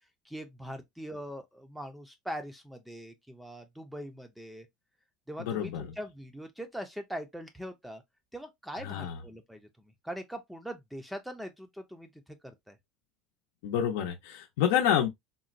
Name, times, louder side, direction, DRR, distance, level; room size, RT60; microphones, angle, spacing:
voice 1, 0.2-4.7 5.3-8.0 8.3-12.8, equal, ahead, 0.4 m, -42 dB
voice 2, 5.4-5.9 8.8-9.2 13.6-15.1, left 9 dB, 90° left, 0.6 m, -28 dB
3.8 x 2.1 x 2.5 m
cardioid pair, 165°, 0 cm